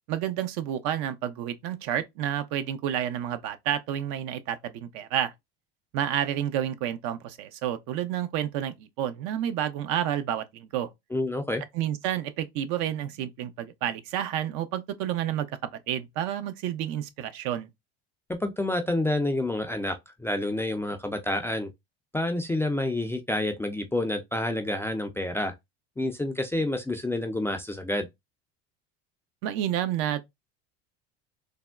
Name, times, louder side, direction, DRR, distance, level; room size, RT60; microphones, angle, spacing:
voice 1, 0.1-5.3 5.9-10.9 11.7-15.5 15.9-17.7 29.4-30.2, right 10 dB, 65° right, 0.6 m, -30 dB
voice 2, 11.1-11.6 18.4-21.7 22.1-25.5 26.0-28.1, left 1 dB, 10° left, 0.3 m, -28 dB
3.4 x 2.1 x 2.2 m
supercardioid pair, 90°, 33 cm